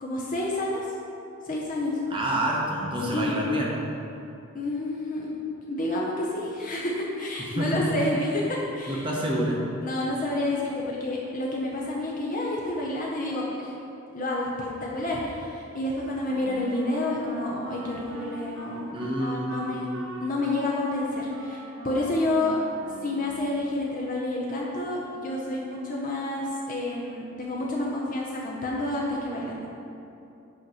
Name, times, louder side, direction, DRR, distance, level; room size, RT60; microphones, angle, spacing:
voice 1, 0.0-0.9 1.4-2.0 3.0-3.3 4.5-5.3 5.7-9.0 9.8-13.7 14.1-19.9 20.2-22.6 23.0-29.7, left 2 dB, 35° left, -3 dB, 0.6 m, -29 dB
voice 2, 2.1-3.7 7.5-7.8 8.9-9.6 18.9-19.9, right 1 dB, 25° right, -3 dB, 0.8 m, -28 dB
Wind instrument woodwind instrument, 16.3-23.7, right 1 dB, 60° right, 0.8 m, -41 dB
7.8 x 3.0 x 5.4 m, 2.7 s
head